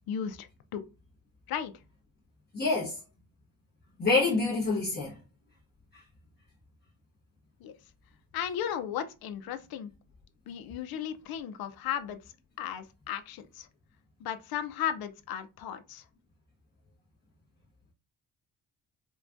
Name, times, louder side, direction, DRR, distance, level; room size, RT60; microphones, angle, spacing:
voice 1, 0.1-0.8 1.5-1.7 7.6-7.7 8.3-9.9 10.5-12.2 12.6-13.7 14.2-16.0, left 9 dB, 75° left, 0.6 m, -35 dB
voice 2, 2.5-3.0 4.0-5.1, left 3 dB, 30° left, 0.9 m, -26 dB
4.7 x 2.3 x 2.5 m
cardioid pair, 170°, 36 cm